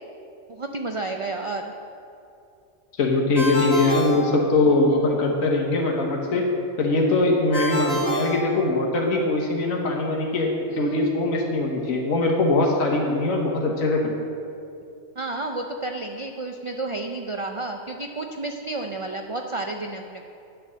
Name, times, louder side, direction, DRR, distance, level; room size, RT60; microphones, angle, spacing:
voice 1, 0.5-1.7 10.7-11.0 15.2-20.2, right 2 dB, 50° right, 3 dB, 0.3 m, -31 dB
voice 2, 3.0-6.5 6.8-14.1, left 2 dB, 80° left, 0 dB, 1.6 m, -22 dB
Ringtone, 3.3-5.0 7.5-9.2, right 1 dB, 80° right, 2.6 m, -28 dB
10.0 x 6.9 x 7.4 m, 2.6 s
omnidirectional pair, 1.4 m